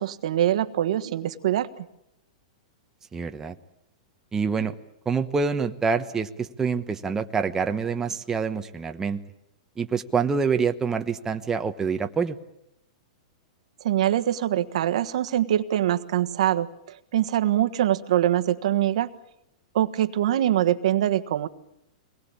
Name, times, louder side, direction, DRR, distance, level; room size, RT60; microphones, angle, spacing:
voice 1, 0.0-1.9 13.8-19.1 19.7-21.5, right 12 dB, 70° right, 10 dB, 1.4 m, -24 dB
voice 2, 3.1-3.5 4.3-4.7 5.0-9.2 9.8-12.4, right 5 dB, 15° right, 6 dB, 1.1 m, -26 dB
24.0 x 19.5 x 8.7 m, 0.82 s
hypercardioid pair, 135°, 4 cm